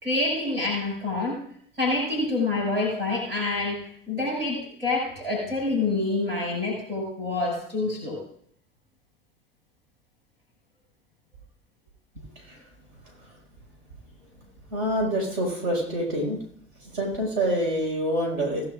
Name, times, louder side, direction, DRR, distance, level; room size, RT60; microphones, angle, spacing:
voice 1, 0.0-1.4 1.8-3.8 4.1-8.2, left 2 dB, 85° right, -3 dB, 6.3 m, -27 dB
voice 2, 14.7-16.4 16.8-18.7, right 1 dB, 55° right, -1 dB, 5.8 m, -26 dB
19.5 x 11.5 x 2.6 m, 0.63 s
figure-of-eight pair, 60°, 29 cm